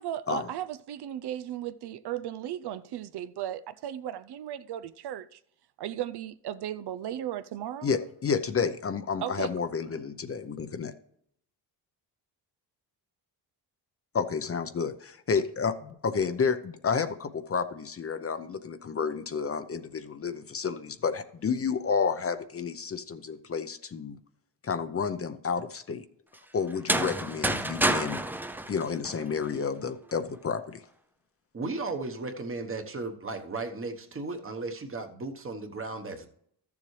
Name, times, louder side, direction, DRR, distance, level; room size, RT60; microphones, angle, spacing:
voice 1, 0.0-5.4 5.8-7.9 9.2-9.5, right 11 dB, 70° right, 0.5 m, -36 dB
voice 2, 7.8-10.9 14.1-24.2 24.6-26.1 26.5-28.2 28.7-30.8, left 6 dB, 35° left, 0.6 m, -30 dB
sound 1, 26.7-29.6, right 1 dB, 5° right, 0.4 m, -29 dB
voice 3, 31.5-36.3, right 3 dB, 30° right, 1.2 m, -35 dB
13.5 x 7.0 x 3.2 m
cardioid pair, 120°, 41 cm